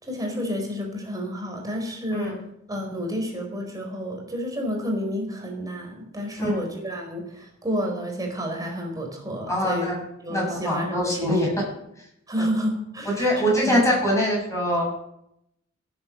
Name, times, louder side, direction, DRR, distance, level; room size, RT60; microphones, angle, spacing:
voice 1, 0.0-2.4 2.7-11.3 12.3-13.8, equal, 15° right, 2 dB, 4.1 m, -30 dB
voice 2, 9.5-10.0 10.3-11.5 12.4-12.5 13.2-14.9, equal, 15° left, -3 dB, 7.7 m, -23 dB
16.5 x 8.9 x 7.7 m, 0.78 s
head